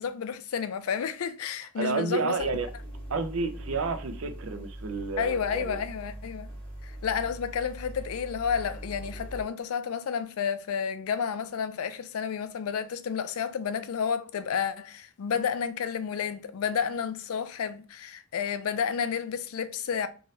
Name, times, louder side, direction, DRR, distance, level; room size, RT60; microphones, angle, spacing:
voice 1, 0.0-2.4 5.2-6.5 6.8-20.1, left 7 dB, 90° left, 0.4 m, -31 dB
voice 2, 1.8-2.7 3.1-5.8, right 4 dB, 70° right, 0.5 m, -30 dB
sound 1, 2.4-9.4, right 1 dB, 10° left, 1.5 m, -41 dB
3.1 x 2.7 x 2.7 m
head